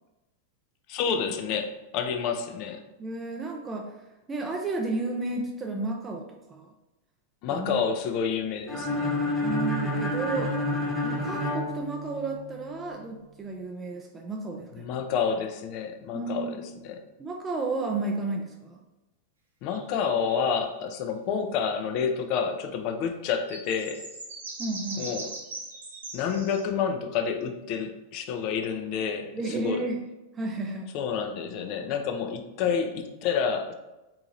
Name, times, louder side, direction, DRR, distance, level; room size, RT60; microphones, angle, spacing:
voice 1, 0.9-2.8 7.4-9.1 14.7-17.0 19.6-24.0 25.0-25.3 26.1-29.9 30.9-33.7, left 6 dB, 45° left, 7 dB, 0.4 m, -29 dB
voice 2, 3.0-3.9 4.3-6.7 7.5-7.8 9.4-10.5 11.0-14.8 16.1-16.6 17.2-18.8 24.6-25.1 29.3-30.0 30.3-30.9, right 3 dB, 15° right, 1 dB, 0.4 m, -32 dB
sound 1, 8.7-12.6, left 1 dB, 15° left, 1.0 m, -29 dB
sound 2, 19.7-20.7 23.5-26.6, right 2 dB, 70° right, 0.9 m, -40 dB
4.5 x 2.8 x 2.6 m, 1.0 s
figure-of-eight pair, 90°, 0 cm